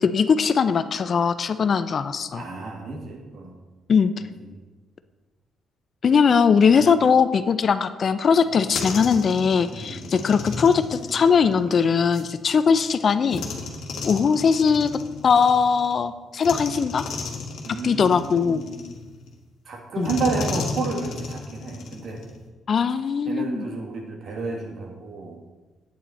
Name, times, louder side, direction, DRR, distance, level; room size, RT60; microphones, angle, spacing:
voice 1, 0.0-2.4 3.9-4.1 6.0-13.4 14.0-14.9 15.2-17.0 17.8-18.6 20.0-20.1 22.7-23.6, left 6 dB, 50° left, 12 dB, 0.5 m, -20 dB
voice 2, 2.3-3.5 4.2-4.6 6.7-6.8 9.7-10.1 13.9-14.1 17.6-18.9 19.7-22.2 23.3-25.4, right 4 dB, 60° right, 1 dB, 2.0 m, -31 dB
sound 1, 8.4-12.3 13.3-15.9 16.4-19.3 20.0-22.5, left 4 dB, 75° left, 1.4 m, -34 dB
8.8 x 8.5 x 4.2 m, 1.2 s
cardioid pair, 90°, 0 cm